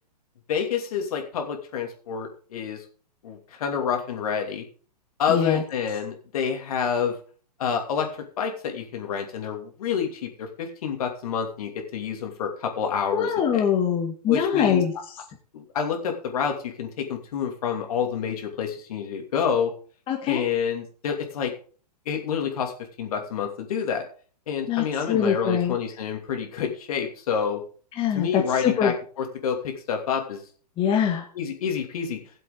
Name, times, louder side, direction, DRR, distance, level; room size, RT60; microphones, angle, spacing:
voice 1, 0.5-2.8 3.2-4.7 5.2-7.1 7.6-8.1 8.4-13.6 14.3-14.8 15.5-19.7 20.3-21.5 22.1-22.7 23.0-24.1 24.5-27.6 28.1-30.4 31.3-32.2, left 7 dB, 60° left, 4 dB, 2.8 m, -28 dB
voice 2, 5.3-5.6 13.1-15.2 20.1-20.4 24.7-25.8 28.0-28.9 30.8-31.2, left 8 dB, 25° left, 1 dB, 1.6 m, -23 dB
17.0 x 7.6 x 3.8 m, 0.42 s
hypercardioid pair, 125°, 21 cm